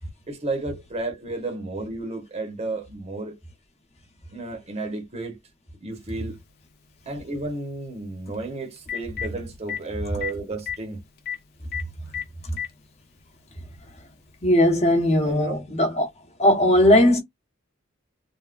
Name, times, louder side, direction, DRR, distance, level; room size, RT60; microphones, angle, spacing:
voice 1, 0.3-3.4 4.3-5.4 5.8-6.4 7.1-11.0 15.2-15.6, right 2 dB, 35° right, 0.9 m, -32 dB
Telephone, 6.1-6.2 8.3-8.4 8.8-9.3 9.7-9.8 10.2-10.3 10.6-10.8 11.3-11.4 11.7-11.8 12.1-12.7 13.7-13.8 15.2-15.3, left 9 dB, 50° left, 0.5 m, -30 dB
voice 2, 14.4-16.1 16.4-17.2, left 1 dB, 35° left, 1.0 m, -18 dB
3.5 x 2.2 x 2.3 m
head